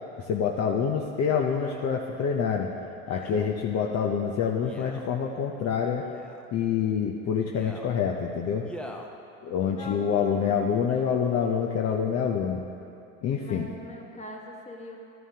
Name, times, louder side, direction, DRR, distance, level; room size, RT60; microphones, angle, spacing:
voice 1, 0.2-2.7 3.1-6.0 6.5-8.6 9.4-12.6 13.2-13.7, left 7 dB, 50° left, 0 dB, 0.7 m, -26 dB
Male speech man speaking, 1.5-1.9 3.1-3.5 4.6-5.1 6.0-6.5 7.4-7.9 8.6-9.1 9.8-9.9, equal, 5° left, 0.8 m, -44 dB
voice 2, 9.7-10.7 13.4-15.0, left 2 dB, 20° left, 0 dB, 1.5 m, -42 dB
13.0 x 11.0 x 2.9 m, 2.7 s
supercardioid pair, 95°, 34 cm